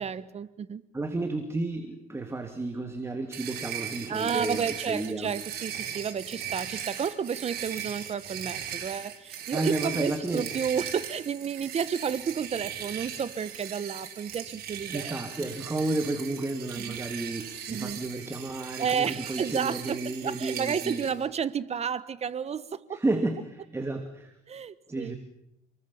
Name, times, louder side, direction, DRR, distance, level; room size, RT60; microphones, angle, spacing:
voice 1, 0.0-0.9 4.1-15.1 16.8-17.0 17.7-18.0 18.8-23.0 24.5-25.1, right 7 dB, 40° right, 1.4 m, -31 dB
voice 2, 0.9-5.3 9.5-10.5 14.9-21.1 22.9-24.3 24.9-25.2, right 2 dB, 15° right, 2.7 m, -32 dB
sound 1, 3.3-21.1, right 9 dB, 70° right, 5.5 m, -38 dB
28.5 x 21.5 x 7.2 m
cardioid pair, 110°, 17 cm